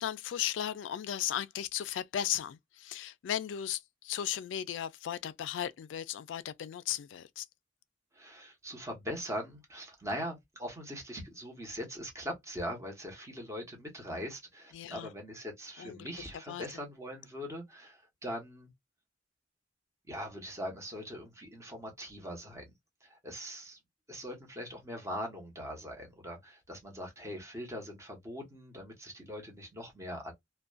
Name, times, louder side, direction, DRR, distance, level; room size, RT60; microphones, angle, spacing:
voice 1, 0.0-7.4 14.7-15.1 15.8-16.1 16.5-16.6, left 10 dB, 85° left, 0.3 m, -36 dB
voice 2, 8.1-18.7 20.1-22.7 23.0-23.8 24.1-30.3, equal, 15° right, 1.0 m, -41 dB
2.4 x 2.1 x 2.3 m
head